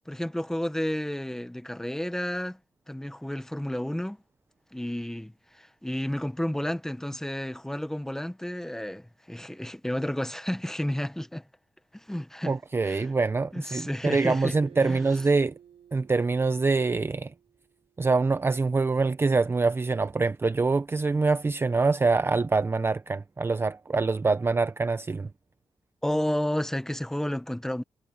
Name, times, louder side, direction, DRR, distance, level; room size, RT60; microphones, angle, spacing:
voice 1, 0.1-2.6 2.9-4.2 4.7-11.5 11.9-12.6 12.8-13.1 13.5-15.0 26.0-27.8, left 1 dB, 5° left, 1.3 m, -31 dB
voice 2, 12.5-15.5 15.9-17.3 18.0-25.3, right 4 dB, 25° right, 0.6 m, -25 dB
Acoustic guitar, 14.5-18.0, right 9 dB, 90° right, 6.7 m, -54 dB
wide cardioid pair, 115°, 10 cm